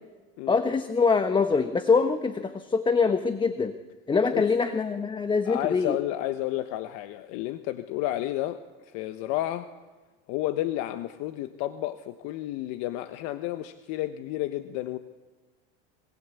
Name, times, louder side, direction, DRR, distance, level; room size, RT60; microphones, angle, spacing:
voice 1, 0.5-3.7 4.1-6.0, left 4 dB, 15° left, 10 dB, 1.2 m, -24 dB
voice 2, 5.4-9.7 10.3-15.0, left 14 dB, 65° left, 10 dB, 1.3 m, -31 dB
26.5 x 24.0 x 8.4 m, 1.3 s
supercardioid pair, 125°, 30 cm